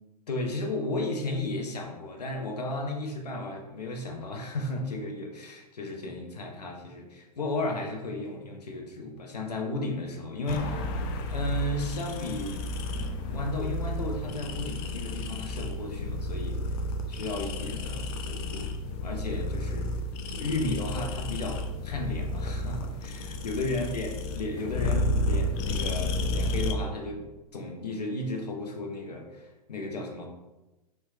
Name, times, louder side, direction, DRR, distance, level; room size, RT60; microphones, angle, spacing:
voice 1, 0.3-10.8 11.3-12.6 13.3-16.6 17.1-19.9 20.3-27.3 27.5-30.3, left 2 dB, 80° left, 2 dB, 0.9 m, -34 dB
sound 1, 10.5-26.7, left 1 dB, 40° left, 0.5 m, -32 dB
4.4 x 2.3 x 4.5 m, 1.0 s
figure-of-eight pair, 100°, 21 cm